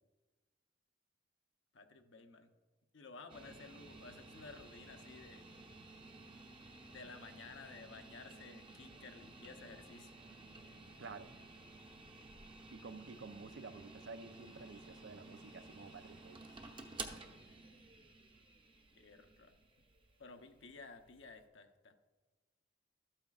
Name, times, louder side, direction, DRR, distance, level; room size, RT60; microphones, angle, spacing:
voice 1, 1.7-2.5 2.9-5.4 6.8-10.1 17.5-17.6 18.9-19.5 20.2-22.0, left 4 dB, 75° left, 6 dB, 0.8 m, -54 dB
sound 1, 3.3-21.4, right 3 dB, 30° right, 0.8 m, -54 dB
voice 2, 11.0-11.4 12.7-16.5, right 4 dB, 70° right, 11 dB, 0.5 m, -51 dB
13.0 x 8.7 x 2.4 m, 1.2 s
head